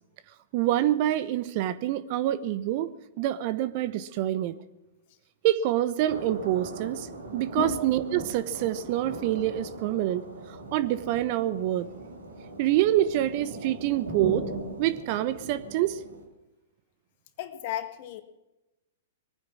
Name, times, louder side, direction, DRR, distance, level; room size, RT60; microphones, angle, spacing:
voice 1, 0.5-2.9 3.2-4.5 5.4-7.1 7.3-11.9 12.6-14.5 14.8-16.0, right 13 dB, 45° right, 15 dB, 0.9 m, -26 dB
sound 1, 6.1-16.2, right 2 dB, 85° right, 3.6 m, -39 dB
voice 2, 17.4-18.2, left 11 dB, 50° left, 9 dB, 1.8 m, -33 dB
21.5 x 9.7 x 6.2 m, 0.99 s
hypercardioid pair, 110°, 0 cm